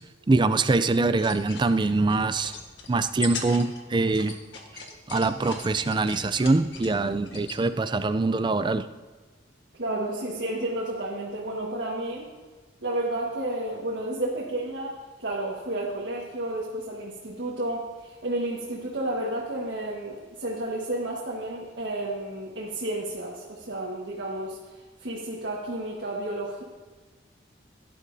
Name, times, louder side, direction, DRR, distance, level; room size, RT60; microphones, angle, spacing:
voice 1, 0.3-2.5 2.9-4.3 5.1-8.9, right 3 dB, 25° right, 11 dB, 0.4 m, -24 dB
sound 1, 1.1-7.6, left 4 dB, 80° left, 1.5 m, -41 dB
voice 2, 9.7-12.3 12.8-26.6, right 1 dB, 75° right, -4 dB, 1.6 m, -31 dB
17.0 x 11.0 x 2.7 m, 1.3 s
head